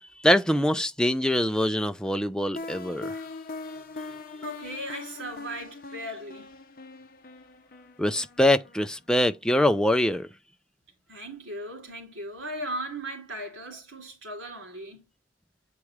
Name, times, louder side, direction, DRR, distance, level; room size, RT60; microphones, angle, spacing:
voice 1, 0.2-3.2 8.0-10.3, left 1 dB, 5° left, 0.4 m, -24 dB
sound 1, 2.6-9.3, left 3 dB, 45° left, 0.8 m, -41 dB
voice 2, 4.4-6.5 11.1-15.0, right 1 dB, 80° right, 3.2 m, -37 dB
8.4 x 4.7 x 3.1 m
head